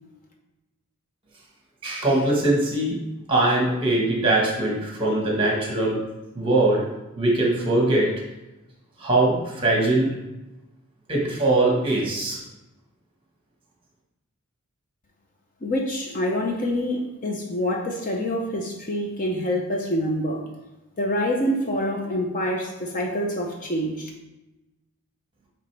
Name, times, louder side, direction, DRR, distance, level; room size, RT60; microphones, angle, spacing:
voice 1, 1.8-3.0 3.3-6.0 6.3-6.9 7.2-8.1 9.0-10.2 11.1-12.4, right 2 dB, 25° right, -3 dB, 1.4 m, -21 dB
voice 2, 15.6-20.4 21.0-24.1, equal, 35° left, 0 dB, 0.7 m, -26 dB
8.8 x 3.3 x 3.3 m, 1.0 s
head